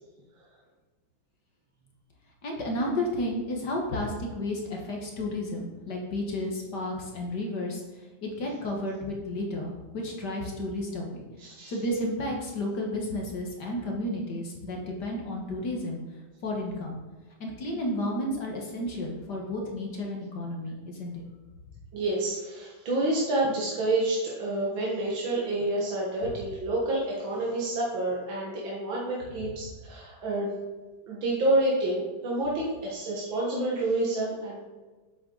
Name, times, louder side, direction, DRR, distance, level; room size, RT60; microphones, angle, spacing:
voice 1, 2.4-7.8 8.2-11.2 11.7-16.0 16.4-17.0 17.4-21.2, left 1 dB, 60° left, 0 dB, 2.0 m, -32 dB
voice 2, 11.4-11.7 21.9-30.5 31.1-34.6, right 2 dB, 75° right, -5 dB, 2.5 m, -28 dB
8.9 x 7.9 x 4.0 m, 1.3 s
omnidirectional pair, 2.1 m